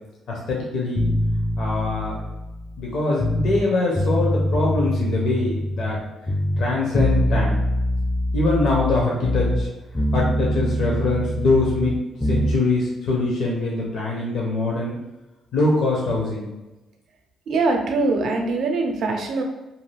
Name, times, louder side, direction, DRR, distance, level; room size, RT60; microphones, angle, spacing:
voice 1, 0.3-1.0 1.6-2.2 2.8-6.0 6.6-7.6 8.3-9.7 10.1-15.0 15.5-16.5 18.2-18.3, left 3 dB, 70° left, -3 dB, 0.7 m, -23 dB
sound 1, 1.0-3.6 4.0-6.0 6.3-9.7 10.0-12.6, equal, 5° left, 0.4 m, -24 dB
voice 2, 17.5-19.4, right 3 dB, 65° right, 3 dB, 0.5 m, -22 dB
2.7 x 2.3 x 3.2 m, 1.0 s
cardioid pair, 90°, 0 cm